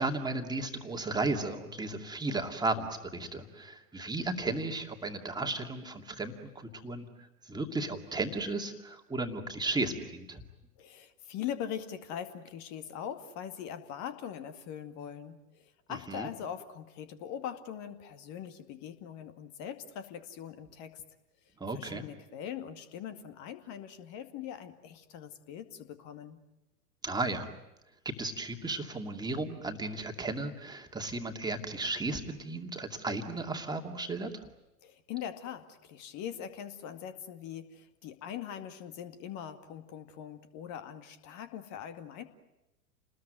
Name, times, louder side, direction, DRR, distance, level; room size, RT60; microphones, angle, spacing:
voice 1, 0.0-10.4 15.9-16.3 21.6-22.0 27.0-27.5 28.0-34.5, right 2 dB, 10° right, 4 dB, 2.4 m, -35 dB
voice 2, 10.8-21.0 21.7-26.4 34.8-42.2, left 9 dB, 35° left, 8 dB, 2.2 m, -42 dB
29.5 x 20.5 x 9.3 m, 0.95 s
figure-of-eight pair, 100°, 46 cm